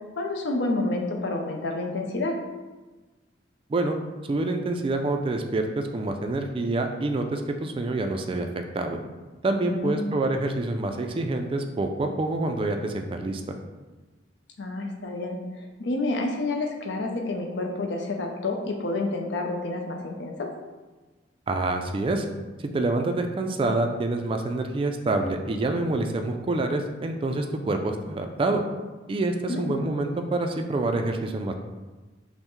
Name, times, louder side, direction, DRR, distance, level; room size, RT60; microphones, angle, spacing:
voice 1, 0.2-2.4 9.6-10.2 14.6-20.5 29.5-29.8, left 2 dB, 70° left, 2 dB, 0.5 m, -29 dB
voice 2, 4.3-9.0 9.4-13.6 21.5-22.2 22.6-28.6 29.1-31.5, right 2 dB, 30° right, 4 dB, 0.3 m, -27 dB
5.4 x 2.1 x 3.0 m, 1.2 s
head